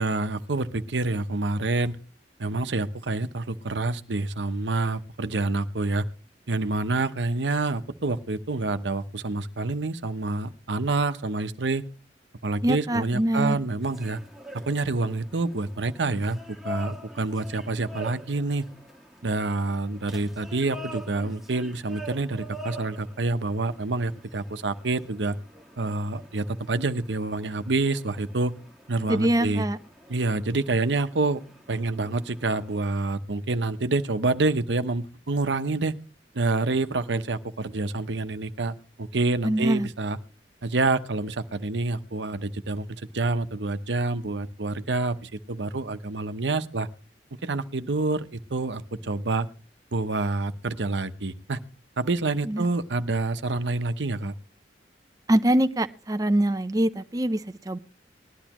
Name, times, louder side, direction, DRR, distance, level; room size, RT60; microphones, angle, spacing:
voice 1, 0.0-2.0 2.4-6.0 6.5-11.8 12.4-14.2 14.5-16.4 16.6-18.7 19.2-25.4 25.8-28.5 28.9-29.6 30.1-31.4 31.7-36.0 36.3-40.2 40.6-46.9 47.4-49.5 49.9-51.6 52.0-54.3, right 3 dB, 85° right, 11 dB, 0.9 m, -27 dB
voice 2, 12.6-13.6 29.1-29.8 39.4-39.9 52.5-52.7 55.3-57.8, right 1 dB, 20° right, 9 dB, 0.6 m, -24 dB
sound 1, 13.8-32.9, equal, ahead, 1.6 m, -45 dB
19.5 x 12.0 x 3.0 m, 0.32 s
head